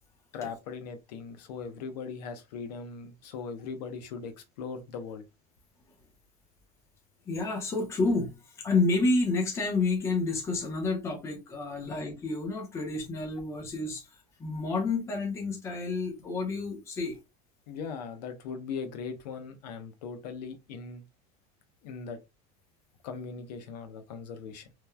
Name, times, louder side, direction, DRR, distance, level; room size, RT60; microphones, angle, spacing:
voice 1, 0.3-5.2 17.7-21.0 21.8-22.2 23.0-24.7, left 5 dB, 90° left, 0.7 m, -39 dB
voice 2, 7.3-17.2, left 3 dB, 15° left, 0.6 m, -29 dB
3.0 x 2.0 x 2.2 m
supercardioid pair, 175°, 20 cm